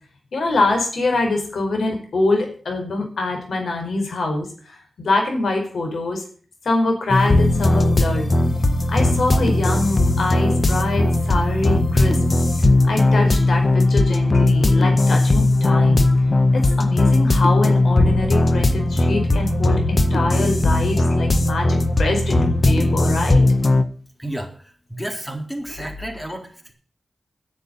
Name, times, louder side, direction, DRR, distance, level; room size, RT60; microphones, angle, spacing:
voice 1, 0.3-6.2 6.6-8.3 8.9-12.2 12.9-16.0 16.5-23.5, left 2 dB, 85° left, 3 dB, 4.7 m, -24 dB
sound 1, 7.1-23.8, left 2 dB, 40° left, 1.4 m, -18 dB
voice 2, 24.2-26.7, right 1 dB, ahead, 3 dB, 3.8 m, -31 dB
10.0 x 7.8 x 9.6 m, 0.43 s
wide cardioid pair, 70°, 0 cm